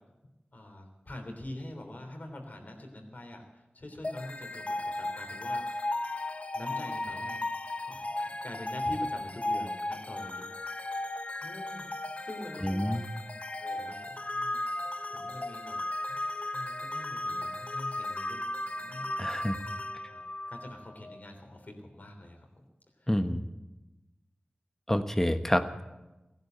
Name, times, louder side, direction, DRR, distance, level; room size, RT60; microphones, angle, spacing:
voice 1, 0.5-6.0 6.5-7.4 7.8-10.5 11.4-11.9 12.2-13.0 13.6-15.8 16.1-19.1 20.0-20.2 20.5-22.5 23.0-23.1, left 1 dB, 60° left, 3 dB, 3.4 m, -45 dB
sound 1, 4.0-21.2, left 2 dB, 45° left, 0.9 m, -35 dB
voice 2, 12.6-13.0 19.2-19.6 23.1-23.4 24.9-25.8, equal, 10° left, 9 dB, 1.2 m, -28 dB
16.5 x 11.0 x 7.9 m, 1.0 s
cardioid pair, 40°, 3 cm